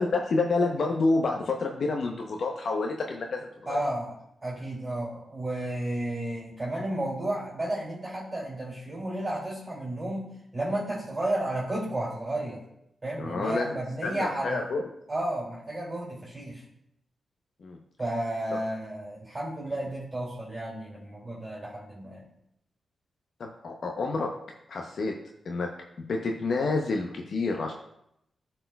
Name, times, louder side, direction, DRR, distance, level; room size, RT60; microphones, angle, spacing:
voice 1, 0.0-3.8 13.2-14.8 17.6-17.8 23.4-24.3 24.7-25.1 25.4-25.7 26.0-27.7, left 3 dB, 70° left, 1 dB, 0.7 m, -28 dB
voice 2, 3.7-4.2 4.4-12.6 13.0-14.6 15.1-16.6 18.0-22.3, right 1 dB, 30° right, -6 dB, 2.5 m, -32 dB
12.0 x 4.4 x 2.3 m, 0.78 s
cardioid pair, 55°, 0 cm